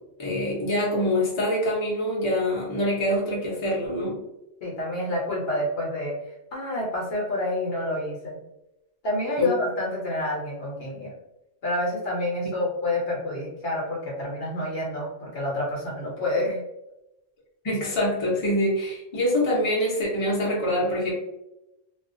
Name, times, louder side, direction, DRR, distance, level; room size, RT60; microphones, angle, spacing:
voice 1, 0.2-4.2 9.4-9.5 17.6-21.1, left 1 dB, 30° left, -6 dB, 0.7 m, -25 dB
voice 2, 4.6-6.1 6.5-8.4 9.0-11.2 11.6-16.6, left 1 dB, 60° left, -4 dB, 1.0 m, -28 dB
2.4 x 2.3 x 2.5 m, 0.90 s
omnidirectional pair, 1.3 m